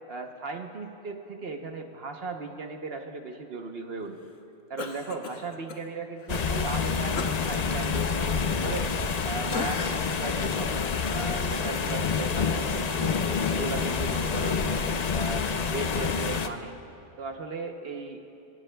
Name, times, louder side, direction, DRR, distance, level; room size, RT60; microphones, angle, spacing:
voice 1, 0.1-4.3 4.7-8.9 9.2-10.7 11.1-13.1 13.5-14.8 15.1-16.7 17.2-18.3, right 4 dB, 60° right, 4 dB, 1.1 m, -37 dB
Cough, 4.8-5.8 6.2-6.3 7.2-9.2 9.5-10.2 10.7-10.8, left 4 dB, 90° left, 1.3 m, -37 dB
sound 1, 6.3-16.5, left 5 dB, 45° left, 0.6 m, -28 dB
28.0 x 17.5 x 2.3 m, 2.7 s
omnidirectional pair, 1.2 m